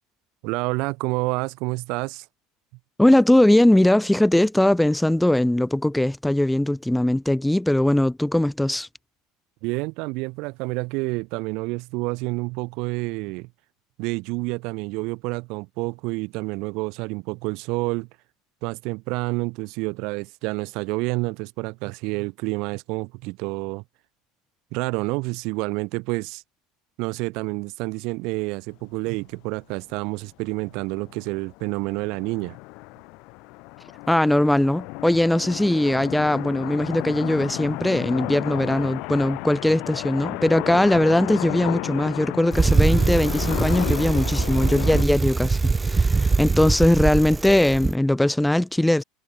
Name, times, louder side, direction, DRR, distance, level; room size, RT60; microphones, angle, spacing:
voice 1, 0.4-2.3 9.6-13.5 14.0-18.1 18.6-23.8 24.7-26.4 27.0-32.6, right 26 dB, 65° right, 1.1 m, -28 dB
voice 2, 3.0-8.9 34.1-49.0, left 1 dB, 5° left, 0.4 m, -20 dB
sound 1, 29.9-30.0 30.3-30.4 30.6-45.0, left 27 dB, 65° left, 2.5 m, -33 dB
Bicycle, 42.5-47.9, right 4 dB, 15° right, 1.2 m, -22 dB
supercardioid pair, 100°, 0 cm